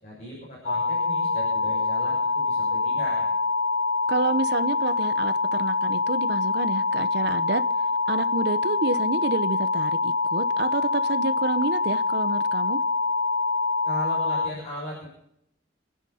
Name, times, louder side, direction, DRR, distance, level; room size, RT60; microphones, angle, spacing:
voice 1, 0.0-2.2 2.4-3.3 13.9-15.1, equal, 35° left, 6.9 m, -37 dB
sound 1, 0.7-14.5, left 3 dB, 75° left, 1.3 m, -25 dB
voice 2, 4.1-7.6 8.1-12.8, right 3 dB, 55° right, 0.8 m, -29 dB
27.0 x 10.5 x 4.3 m
head